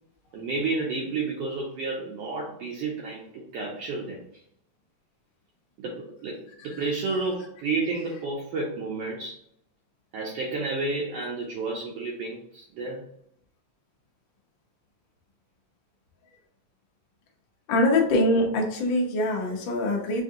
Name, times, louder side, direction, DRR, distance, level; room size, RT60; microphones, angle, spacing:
voice 1, 0.3-4.2 5.8-9.4 10.1-13.0, right 3 dB, 80° right, -2 dB, 1.4 m, -31 dB
voice 2, 17.7-20.2, left 1 dB, 80° left, 0 dB, 1.0 m, -23 dB
4.6 x 2.7 x 3.6 m, 0.69 s
omnidirectional pair, 3.5 m